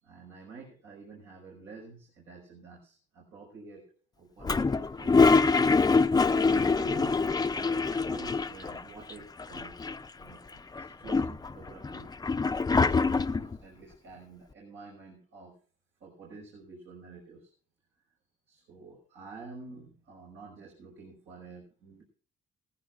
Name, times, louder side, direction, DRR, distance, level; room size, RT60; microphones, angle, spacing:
voice 1, 0.0-3.8 4.2-5.7 6.4-7.2 7.5-9.8 10.2-12.1 12.7-15.5 16.0-17.5 18.5-22.0, right 4 dB, 85° right, -2 dB, 5.7 m, -48 dB
Toilet flush, 4.4-8.8 9.1-9.2 9.4-10.2 10.7-13.6, left 4 dB, 20° left, 0.6 m, -25 dB
18.5 x 15.5 x 2.6 m, 0.41 s
cardioid pair, 90°, 20 cm